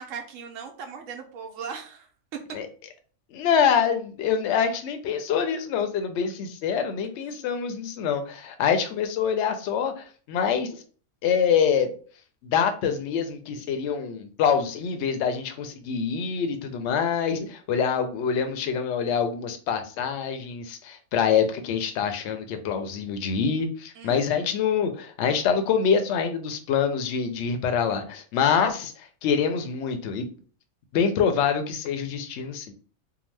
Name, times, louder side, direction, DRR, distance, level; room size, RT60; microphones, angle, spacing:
voice 1, 0.0-2.4 24.0-24.4, right 6 dB, 70° right, 3 dB, 0.9 m, -38 dB
voice 2, 3.3-10.8 11.2-11.9 12.4-30.3 30.9-32.7, left 7 dB, 65° left, 7 dB, 0.7 m, -25 dB
2.8 x 2.1 x 3.1 m, 0.41 s
omnidirectional pair, 1.4 m